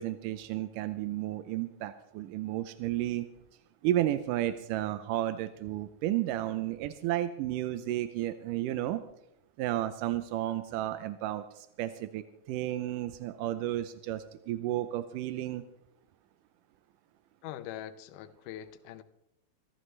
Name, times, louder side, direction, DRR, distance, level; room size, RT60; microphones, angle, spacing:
voice 1, 0.0-3.3 3.8-9.0 9.6-12.2 12.5-15.6, right 13 dB, 80° right, 11 dB, 1.9 m, -32 dB
voice 2, 17.4-19.0, left 11 dB, 75° left, 10 dB, 2.1 m, -43 dB
26.5 x 13.0 x 3.2 m, 0.84 s
omnidirectional pair, 4.3 m